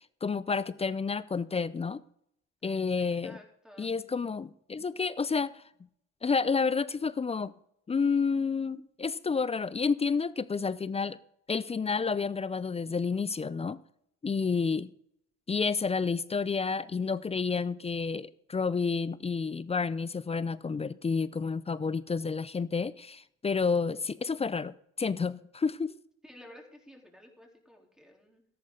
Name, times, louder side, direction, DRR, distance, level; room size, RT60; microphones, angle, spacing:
voice 1, 0.0-2.0 2.6-3.4 3.8-5.6 6.2-7.5 7.9-11.2 11.5-13.8 14.2-14.9 15.5-26.0, left 5 dB, 20° left, 0.5 m, -30 dB
voice 2, 3.0-4.0 26.2-28.5, left 1 dB, ahead, 3.6 m, -53 dB
13.5 x 11.0 x 3.8 m
supercardioid pair, 70°, 31 cm